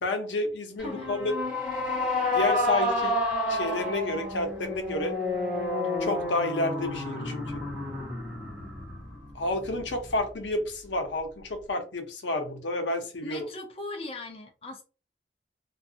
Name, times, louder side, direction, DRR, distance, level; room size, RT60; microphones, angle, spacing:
voice 1, 0.0-1.3 2.3-3.2 3.5-5.2 6.0-7.6 9.3-13.4, left 2 dB, 80° left, 5 dB, 0.6 m, -30 dB
voice 2, 0.8-1.1 13.2-14.8, left 2 dB, 30° left, 3 dB, 0.4 m, -39 dB
sound 1, 0.8-10.2, left 1 dB, 10° right, 1.4 m, -30 dB
2.4 x 2.2 x 2.6 m, 0.34 s
head